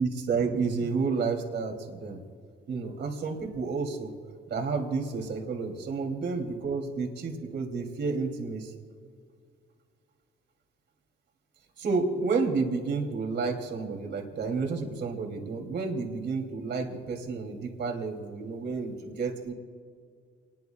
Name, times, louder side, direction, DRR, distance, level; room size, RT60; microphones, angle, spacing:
voice 1, 0.0-2.2 2.7-4.1 4.5-8.7 11.8-19.5, right 4 dB, 60° right, 2 dB, 3.0 m, -30 dB
28.0 x 21.0 x 2.4 m, 2.1 s
cardioid pair, 90°, 20 cm